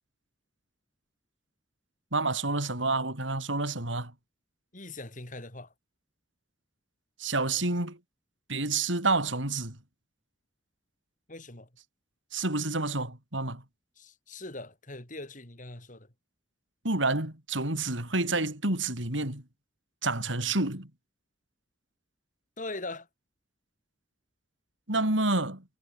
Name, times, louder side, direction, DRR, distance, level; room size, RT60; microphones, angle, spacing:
voice 1, 2.1-4.1 7.2-8.0 8.5-9.8 12.3-13.6 16.8-19.4 20.0-20.9 24.9-25.6, right 2 dB, 85° right, 6.1 m, -29 dB
voice 2, 4.7-5.7 11.3-11.7 14.0-16.1 22.6-23.1, left 2 dB, 45° left, 4.8 m, -41 dB
head